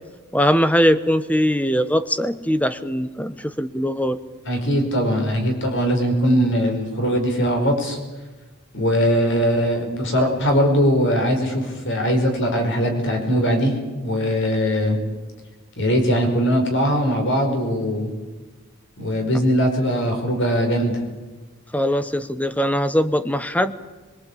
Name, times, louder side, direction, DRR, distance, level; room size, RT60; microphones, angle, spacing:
voice 1, 0.3-4.2 21.7-23.7, equal, 5° left, 12 dB, 0.9 m, -21 dB
voice 2, 4.4-8.0 8.7-13.7 14.0-15.0 15.8-18.1 19.0-21.0, equal, 55° left, 4 dB, 5.2 m, -20 dB
23.0 x 23.0 x 8.6 m, 1.3 s
head